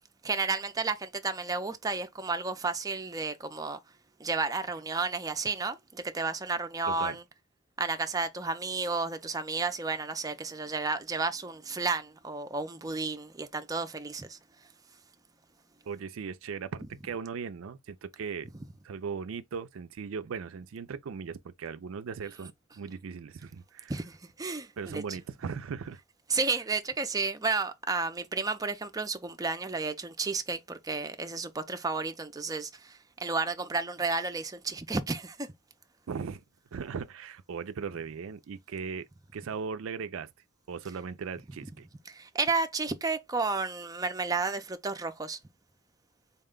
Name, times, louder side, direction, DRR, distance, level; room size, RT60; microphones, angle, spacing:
voice 1, 0.2-3.8 4.2-7.2 7.8-14.4 23.9-25.2 26.3-35.5 42.1-45.4, right 4 dB, 20° right, 0.5 m, -32 dB
voice 2, 6.9-7.2 15.9-18.5 18.8-23.9 24.8-26.0 36.1-36.4 36.7-39.1 39.3-40.3 40.7-41.9, right 6 dB, 80° right, 0.4 m, -38 dB
4.1 x 2.2 x 3.6 m
head